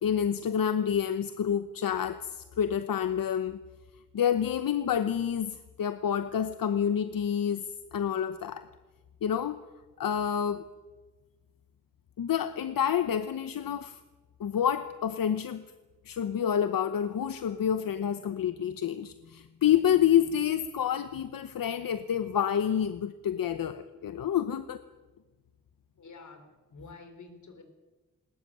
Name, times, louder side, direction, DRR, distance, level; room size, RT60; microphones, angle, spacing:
voice 1, 0.0-3.6 4.1-8.7 9.2-9.6 10.0-10.6 12.2-14.0 14.4-15.7 16.0-24.8, left 9 dB, 85° left, 11 dB, 0.9 m, -28 dB
voice 2, 26.0-27.6, left 4 dB, 60° left, 7 dB, 3.8 m, -49 dB
20.0 x 20.0 x 9.2 m, 1.2 s
wide cardioid pair, 175°, 33 cm